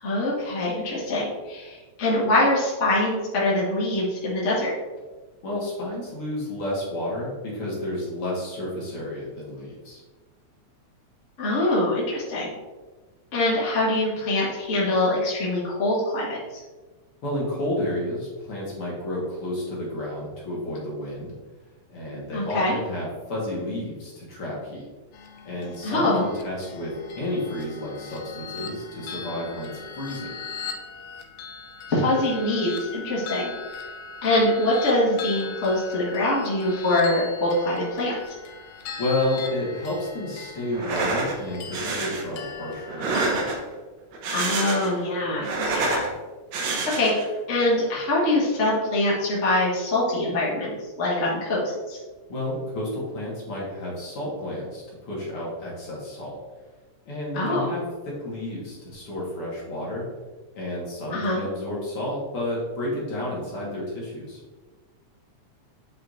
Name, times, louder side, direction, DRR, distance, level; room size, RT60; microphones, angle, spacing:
voice 1, 0.0-4.7 11.4-12.5 13.3-16.6 22.3-22.7 25.8-26.2 31.9-33.5 34.2-38.1 44.3-46.1 46.9-47.1 47.5-50.7 51.0-52.0 57.3-57.7 61.1-61.4, left 1 dB, 30° left, -6 dB, 1.4 m, -24 dB
voice 2, 5.4-10.0 17.2-21.3 21.9-24.9 25.4-30.4 39.0-43.4 52.3-56.4 57.1-60.1 60.5-64.4, left 1 dB, 50° left, -5 dB, 2.4 m, -31 dB
sound 1, 25.1-43.5, left 5 dB, 75° left, 1.6 m, -39 dB
sound 2, 40.7-41.4 41.7-42.2 42.9-43.7 44.1-45.0 45.3-46.1 46.5-47.3, right 3 dB, 70° right, 2.2 m, -27 dB
7.8 x 5.6 x 2.7 m, 1.3 s
omnidirectional pair, 3.4 m